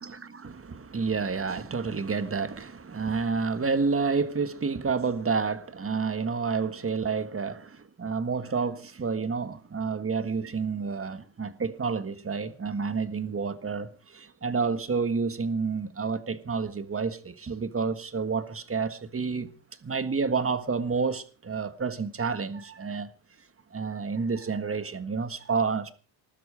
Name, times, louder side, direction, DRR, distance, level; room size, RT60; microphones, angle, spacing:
voice 1, 0.0-19.5 19.8-23.1 23.7-25.9, right 5 dB, 30° right, 1.6 m, -29 dB
20.5 x 12.5 x 4.9 m
cardioid pair, 115°, 47 cm